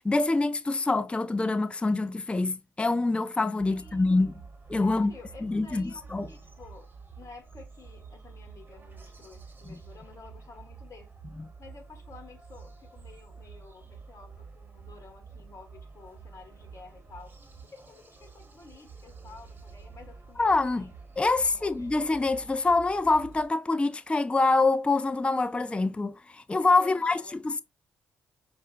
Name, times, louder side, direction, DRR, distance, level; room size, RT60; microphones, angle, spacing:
voice 1, 0.0-4.3 4.7-5.1 5.4-6.3 9.7-9.8 11.4-11.5 20.4-20.9 21.2-27.6, left 3 dB, 15° left, 0.4 m, -25 dB
voice 2, 3.6-4.4 4.8-6.9 7.2-11.1 11.6-17.3 17.7-20.9 21.3-22.0 26.8-27.4, left 4 dB, 40° left, 1.4 m, -50 dB
sound 1, 3.6-23.5, right 5 dB, 25° right, 1.4 m, -48 dB
5.4 x 2.5 x 2.6 m
hypercardioid pair, 40°, 7 cm